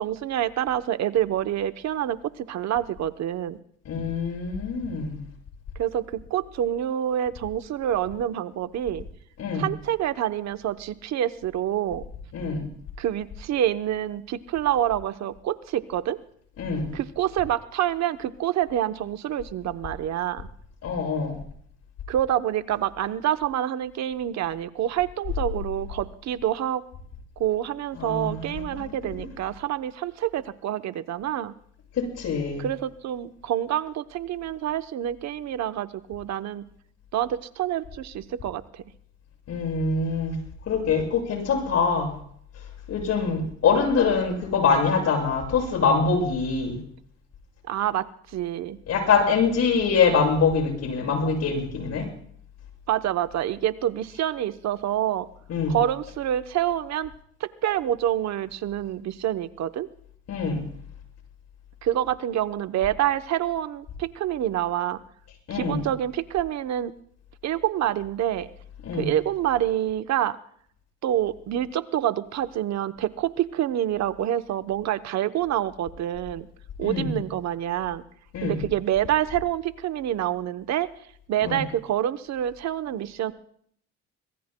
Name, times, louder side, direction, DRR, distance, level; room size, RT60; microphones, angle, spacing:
voice 1, 0.0-3.6 5.8-9.0 9.5-12.0 13.0-16.2 16.9-20.5 22.1-26.8 27.4-31.5 32.6-36.6 37.1-38.8 47.7-48.0 48.3-48.8 52.9-55.3 55.7-57.1 57.4-59.9 61.8-65.0 65.5-66.9 67.4-68.5 69.0-70.4 71.0-76.5 76.8-78.0 78.4-80.9 81.3-83.3, right 11 dB, 65° right, 12 dB, 0.9 m, -27 dB
voice 2, 3.9-5.2 9.4-9.7 12.3-12.6 16.6-16.9 20.8-21.4 28.0-29.2 32.0-32.6 39.5-40.4 40.7-42.1 42.9-46.8 48.9-52.1 55.5-55.8 60.3-60.6 65.5-65.9 68.9-69.1 76.8-77.2 78.3-78.6 81.4-81.6, left 5 dB, 65° left, 1 dB, 7.0 m, -24 dB
24.5 x 23.0 x 2.2 m, 0.62 s
cardioid pair, 105°, 29 cm